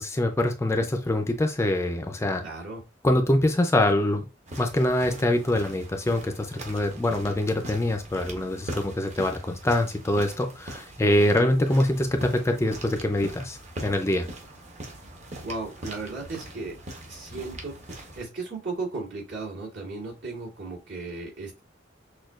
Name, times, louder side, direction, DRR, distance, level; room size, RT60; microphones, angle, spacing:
voice 1, 0.0-2.4 3.0-4.3 4.6-14.3, left 1 dB, 15° left, 0.4 m, -24 dB
voice 2, 2.4-2.8 11.2-11.5 15.4-16.8 17.1-21.6, right 3 dB, 65° right, 2.2 m, -36 dB
sound 1, 4.5-18.2, right 1 dB, 40° right, 0.9 m, -41 dB
6.3 x 2.3 x 2.3 m
head